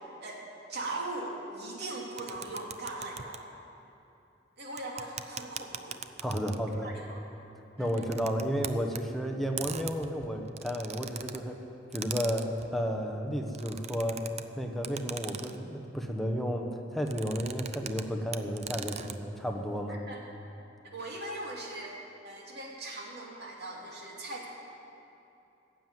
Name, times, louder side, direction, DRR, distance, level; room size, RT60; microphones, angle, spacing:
voice 1, 0.7-3.5 4.6-6.0 6.8-7.3 7.8-8.1 19.9-20.2 20.8-22.0 22.2-24.5, right 2 dB, 60° right, -2 dB, 2.6 m, -40 dB
sound 1, 2.2-3.4 4.8-6.8 7.8-9.0 9.6-11.4 11.9-12.7 13.5-14.4 14.8-15.6 17.1-18.0 18.3-19.2, right 8 dB, 35° right, 0.5 m, -40 dB
voice 2, 6.2-6.9 7.8-11.6 11.9-14.3 14.6-19.9, equal, ahead, 3 dB, 0.9 m, -32 dB
15.5 x 7.4 x 9.1 m, 2.8 s
head